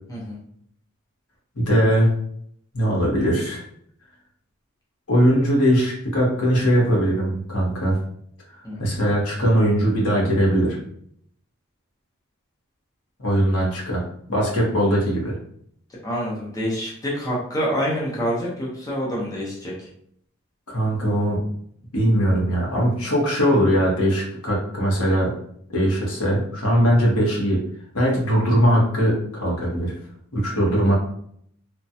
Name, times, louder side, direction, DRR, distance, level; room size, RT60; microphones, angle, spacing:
voice 1, 1.5-2.1 2.7-3.6 5.1-8.0 8.5-10.8 13.2-14.0 14.3-15.4 20.7-21.4 21.9-25.3 25.7-27.6 27.9-29.9 30.3-30.9, equal, 80° left, -4 dB, 1.1 m, -20 dB
voice 2, 16.0-19.9, equal, 15° left, -5 dB, 0.7 m, -27 dB
3.1 x 2.2 x 2.7 m, 0.68 s
head